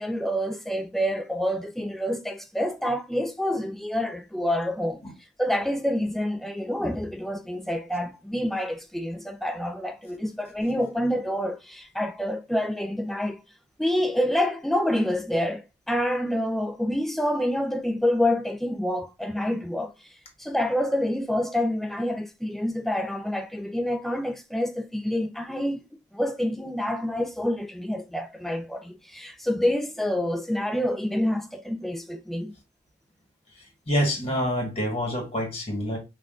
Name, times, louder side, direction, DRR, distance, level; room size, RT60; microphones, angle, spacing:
voice 1, 0.0-5.0 5.4-13.4 13.8-19.9 20.4-25.8 26.1-32.5, left 1 dB, ahead, 0.4 m, -27 dB
voice 2, 33.6-36.0, equal, 35° left, 1.3 m, -27 dB
5.5 x 2.4 x 2.4 m
head